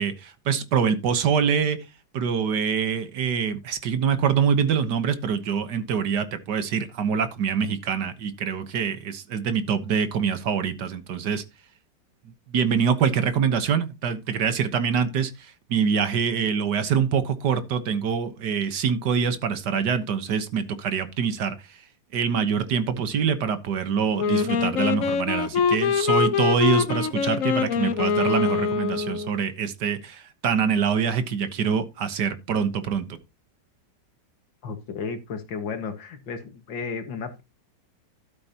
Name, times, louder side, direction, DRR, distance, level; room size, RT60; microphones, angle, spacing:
voice 1, 0.0-1.8 2.1-11.4 12.5-21.8 22.1-33.0, right 7 dB, 65° right, 1.7 m, -25 dB
Wind instrument woodwind instrument, 24.2-29.4, left 6 dB, 55° left, 1.1 m, -24 dB
voice 2, 34.6-37.4, left 5 dB, 85° left, 2.3 m, -33 dB
12.5 x 8.5 x 2.9 m
omnidirectional pair, 2.0 m